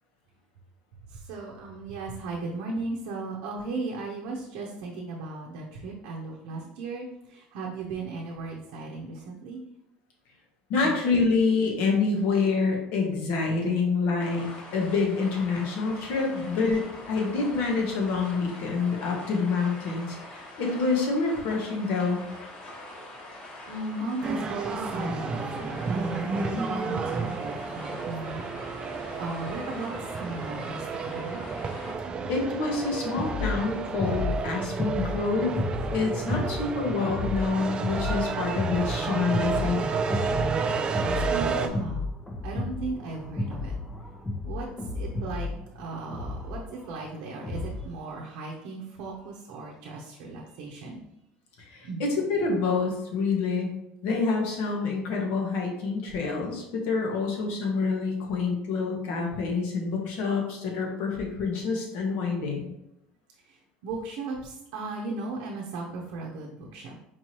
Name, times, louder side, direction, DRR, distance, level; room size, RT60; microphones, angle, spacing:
voice 1, 1.1-9.6 10.8-10.9 16.3-16.4 23.7-28.4 29.2-31.4 40.7-42.0 42.4-43.7 44.5-45.5 45.7-51.0 51.8-52.0 63.5-66.9, right 3 dB, 75° right, -2 dB, 0.7 m, -36 dB
voice 2, 10.7-14.5 14.7-16.8 17.1-22.2 32.3-35.5 35.9-39.8 51.7-53.7 54.0-62.7, left 4 dB, 75° left, 0 dB, 1.2 m, -27 dB
sound 1, 14.2-31.9, left 1 dB, 45° left, 1.3 m, -44 dB
sound 2, 24.2-41.7, right 5 dB, 30° right, 0.4 m, -31 dB
sound 3, 33.2-47.9, left 2 dB, 15° left, 0.7 m, -33 dB
4.5 x 3.0 x 2.9 m, 0.83 s
supercardioid pair, 115°, 3 cm